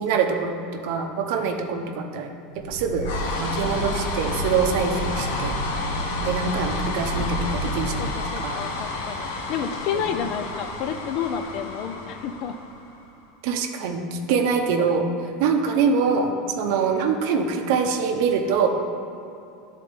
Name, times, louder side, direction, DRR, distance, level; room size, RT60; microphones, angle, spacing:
voice 1, 0.0-2.3 2.6-3.1 3.4-5.5 6.2-8.1 8.4-8.6 9.9-10.0 13.4-15.0 15.4-18.7, right 5 dB, 55° right, 4 dB, 0.6 m, -24 dB
sound 1, 2.5-13.0, left 1 dB, 80° left, 0.9 m, -29 dB
voice 2, 7.8-12.6, left 7 dB, 45° left, 9 dB, 0.4 m, -30 dB
11.0 x 4.1 x 3.4 m, 2.7 s
supercardioid pair, 170°, 0 cm